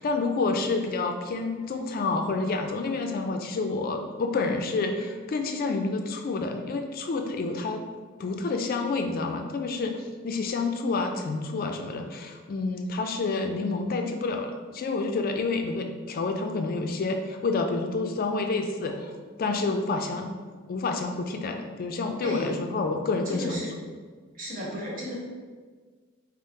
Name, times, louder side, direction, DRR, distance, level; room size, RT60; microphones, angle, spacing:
voice 1, 0.0-7.8 8.2-10.0 10.2-19.1 19.4-20.3 20.7-23.6, left 3 dB, 45° left, 4 dB, 0.3 m, -29 dB
voice 2, 22.2-22.5 23.2-23.7 24.3-25.1, left 1 dB, 45° right, -5 dB, 1.2 m, -33 dB
4.9 x 2.0 x 4.2 m, 1.5 s
head